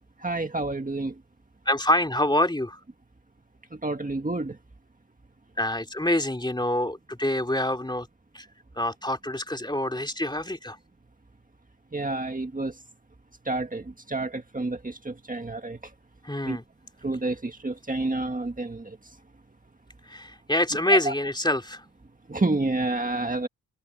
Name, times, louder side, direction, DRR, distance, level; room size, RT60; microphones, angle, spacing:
voice 1, 0.2-1.1 3.7-4.6 11.9-12.7 13.4-15.8 16.4-16.6 17.0-19.0 20.9-21.1 22.3-23.5, right 2 dB, 25° right, 1.7 m, -29 dB
voice 2, 1.7-2.8 5.6-8.1 8.3-8.5 8.8-10.8 16.2-16.6 20.1-21.8, left 1 dB, 15° left, 2.5 m, -26 dB
wide cardioid pair, 95°, 33 cm